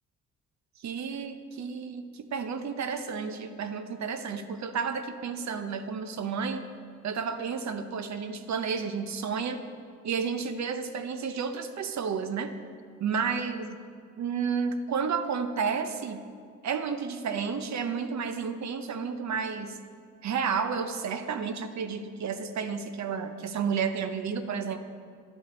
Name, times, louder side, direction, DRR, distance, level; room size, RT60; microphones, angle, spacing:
voice 1, 0.8-6.6 7.0-9.6 10.0-12.5 13.0-13.8 14.2-16.2 16.6-19.8 20.2-24.8, right 6 dB, 60° right, 9 dB, 0.8 m, -31 dB
10.5 x 4.9 x 6.8 m, 2.1 s
cardioid pair, 70°, 31 cm